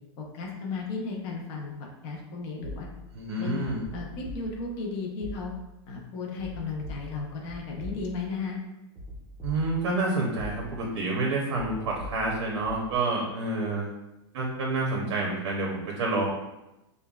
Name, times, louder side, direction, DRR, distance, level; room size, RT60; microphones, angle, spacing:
voice 1, 0.2-1.7 2.0-2.9 3.4-3.6 3.9-5.5 5.9-8.6, left 4 dB, 30° left, -1 dB, 0.6 m, -34 dB
sound 1, 2.6-3.3 3.8-4.9 5.2-5.8 6.4-8.4 9.0-10.0 10.4-11.0 11.5-12.9, left 1 dB, 10° right, 0.6 m, -42 dB
voice 2, 3.1-3.8 9.4-13.9 14.3-16.3, right 2 dB, 85° right, -2 dB, 0.8 m, -28 dB
5.2 x 2.2 x 2.3 m, 0.95 s
supercardioid pair, 175°, 15 cm